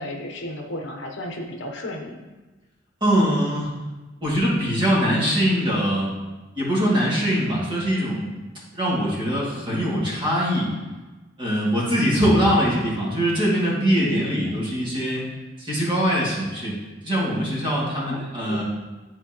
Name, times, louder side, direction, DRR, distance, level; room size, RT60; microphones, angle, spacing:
voice 1, 0.0-2.3 14.0-14.3 18.1-18.2 18.5-18.6, left 1 dB, 65° left, 2 dB, 0.9 m, -33 dB
voice 2, 3.0-3.7 4.2-6.1 6.5-8.3 8.7-10.7 11.4-15.2 15.6-16.7 17.0-18.6, equal, 25° right, -7 dB, 2.1 m, -22 dB
11.0 x 4.4 x 2.9 m, 1.2 s
head